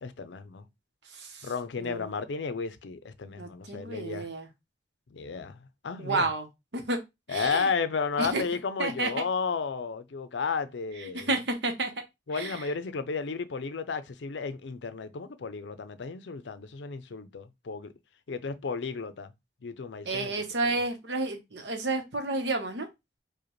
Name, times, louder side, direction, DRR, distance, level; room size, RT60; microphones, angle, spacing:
voice 1, 0.0-0.7 1.4-4.3 5.1-5.6 5.8-6.3 7.3-11.3 12.3-17.9 18.3-19.3 19.6-20.3, left 5 dB, 80° left, 0.5 m, -33 dB
voice 2, 1.1-1.5 1.8-2.1 3.4-4.5 6.0-6.5 6.7-7.0 7.3-7.7 8.2-8.4 8.8-9.1 11.0-11.9 12.3-12.6 20.0-22.9, right 2 dB, 75° right, 0.9 m, -31 dB
4.9 x 2.2 x 3.0 m
head